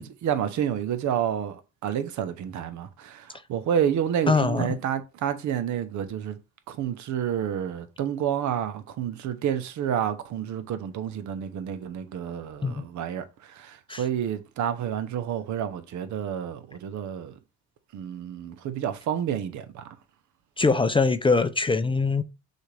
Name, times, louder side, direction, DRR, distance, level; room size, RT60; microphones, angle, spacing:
voice 1, 0.0-6.4 6.7-17.3 17.9-19.9, right 9 dB, 75° right, 0.7 m, -29 dB
voice 2, 4.3-4.8 12.6-12.8 13.9-14.0 20.6-22.2, left 4 dB, 20° left, 0.3 m, -22 dB
6.3 x 2.5 x 3.2 m
cardioid pair, 90°, 30 cm